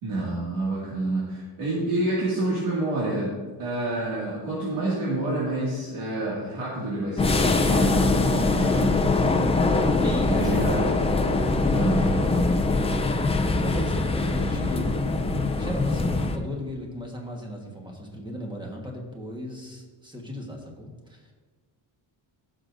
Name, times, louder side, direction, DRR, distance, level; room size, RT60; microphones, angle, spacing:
voice 1, 0.0-3.3 3.6-9.1 10.3-10.9 11.7-12.3, right 2 dB, 85° right, -7 dB, 2.3 m, -28 dB
sound 1, 7.2-16.4, left 3 dB, 15° left, 0.4 m, -23 dB
voice 2, 10.0-10.8 11.4-12.1 12.3-12.8 13.6-15.0 15.6-21.3, equal, 10° right, 0 dB, 1.3 m, -36 dB
15.5 x 6.3 x 2.6 m, 1.4 s
cardioid pair, 150°, 49 cm